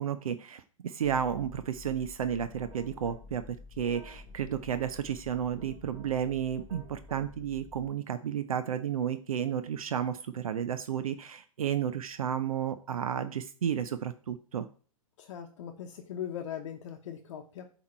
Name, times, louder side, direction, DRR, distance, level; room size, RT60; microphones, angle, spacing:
voice 1, 0.0-14.7, right 8 dB, 75° right, 10 dB, 0.5 m, -32 dB
sound 1, 1.0-7.9, left 4 dB, 5° left, 0.8 m, -50 dB
sound 2, 2.3-3.2 3.8-7.2, right 4 dB, 30° right, 2.7 m, -55 dB
voice 2, 15.2-17.6, left 9 dB, 55° left, 4 dB, 0.9 m, -40 dB
8.5 x 3.0 x 4.3 m, 0.41 s
hypercardioid pair, 115°, 18 cm